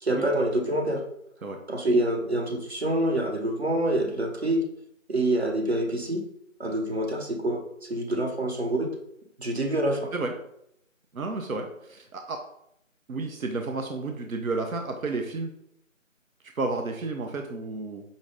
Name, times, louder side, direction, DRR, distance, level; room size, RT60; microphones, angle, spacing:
voice 1, 0.0-1.0 1.7-4.6 5.1-6.2 6.6-7.6 7.9-8.9 9.4-10.1, right 1 dB, 50° right, 2 dB, 0.8 m, -26 dB
voice 2, 11.1-12.4 13.1-15.5 16.6-18.0, right 3 dB, 90° right, 4 dB, 0.7 m, -31 dB
5.3 x 2.4 x 3.5 m, 0.74 s
figure-of-eight pair, 180°, 40 cm